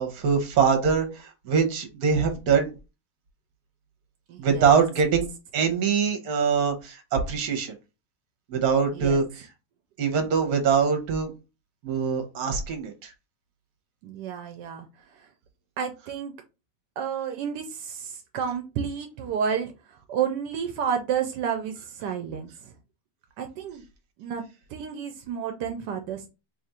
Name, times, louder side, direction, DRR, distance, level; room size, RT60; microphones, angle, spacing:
voice 1, 0.0-2.7 4.4-5.3 5.5-7.7 8.5-9.4 10.0-11.3 11.8-13.1, right 6 dB, 65° right, 1.3 m, -23 dB
voice 2, 4.3-4.8 8.9-9.2 14.0-14.9 15.8-16.3 17.0-22.7 23.4-23.8 24.2-24.4 24.7-26.3, right 7 dB, 85° right, 1.2 m, -31 dB
3.3 x 2.5 x 4.2 m
omnidirectional pair, 1.8 m